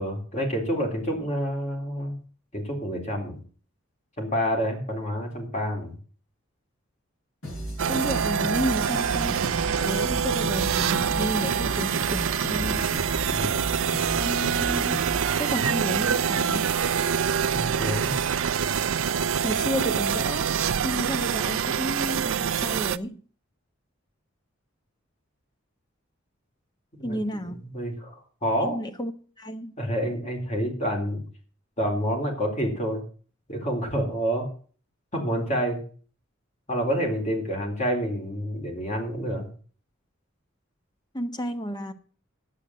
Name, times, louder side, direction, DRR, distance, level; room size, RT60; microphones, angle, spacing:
voice 1, 0.0-2.2 2.5-3.4 4.2-6.0 12.6-13.6 17.5-18.2 26.9-28.8 29.8-31.2 31.8-33.0 33.5-34.5 35.1-35.8 36.7-39.5, equal, 35° left, 3.8 m, -28 dB
sound 1, 7.4-15.3, right 1 dB, 70° left, 6.9 m, -35 dB
sound 2, 7.8-23.0, right 7 dB, 80° right, 0.5 m, -25 dB
voice 2, 7.9-9.4 9.7-12.9 14.0-15.0 15.3-16.7 19.4-20.5 20.8-23.2 27.0-27.6 28.6-29.1 29.4-29.7 41.1-41.9, equal, 20° left, 1.1 m, -31 dB
9.8 x 8.3 x 7.5 m
head